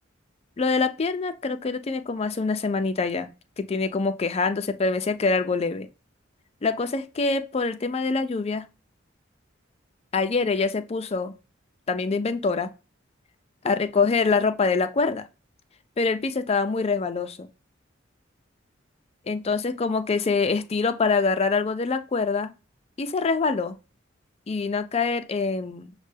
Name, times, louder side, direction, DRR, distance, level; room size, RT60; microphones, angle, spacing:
voice 1, 0.6-3.3 3.6-5.9 6.6-8.6 10.1-11.3 11.9-12.7 13.6-15.3 16.0-17.5 19.3-22.5 23.0-23.8 24.5-25.9, left 4 dB, 30° left, 0.4 m, -25 dB
6.3 x 2.2 x 3.2 m
head